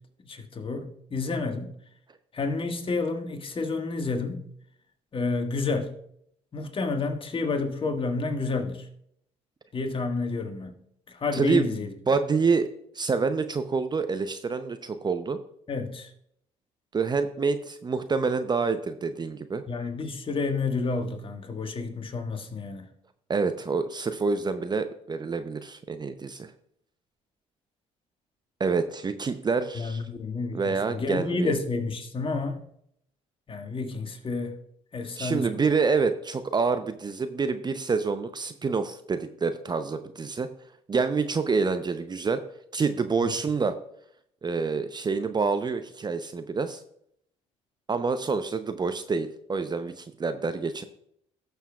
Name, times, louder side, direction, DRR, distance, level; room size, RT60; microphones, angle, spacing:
voice 1, 0.2-1.7 2.3-4.5 5.1-5.9 6.5-8.9 9.7-10.7 11.1-11.9 15.7-16.1 19.7-22.9 29.7-32.6 33.5-34.6 34.9-35.6, left 3 dB, 35° left, 1.6 m, -30 dB
voice 2, 11.3-12.7 12.9-15.4 16.9-19.6 23.3-26.5 28.6-30.0 30.5-31.5 35.2-40.5 40.9-42.4 42.7-43.8 44.4-46.8 47.9-50.8, right 4 dB, 25° right, 0.7 m, -27 dB
18.0 x 6.9 x 2.4 m
hypercardioid pair, 55°, 16 cm